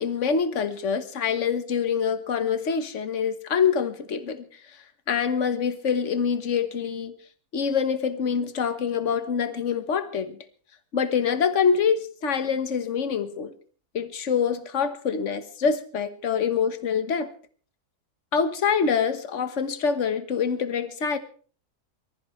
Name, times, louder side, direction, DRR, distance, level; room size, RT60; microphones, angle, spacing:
voice 1, 0.0-7.1 7.5-10.4 10.9-13.5 13.9-17.3 18.3-21.2, left 6 dB, 50° left, 1.6 m, -25 dB
24.0 x 14.5 x 3.3 m
omnidirectional pair, 1.6 m